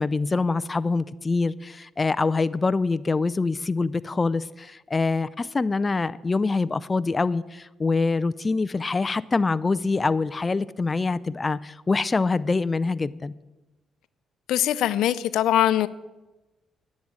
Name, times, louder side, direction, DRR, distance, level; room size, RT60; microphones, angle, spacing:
voice 1, 0.0-13.3, left 3 dB, 25° left, 0.4 m, -25 dB
voice 2, 14.5-15.9, left 12 dB, 85° left, 0.5 m, -22 dB
10.5 x 7.5 x 9.5 m
cardioid pair, 90°, 0 cm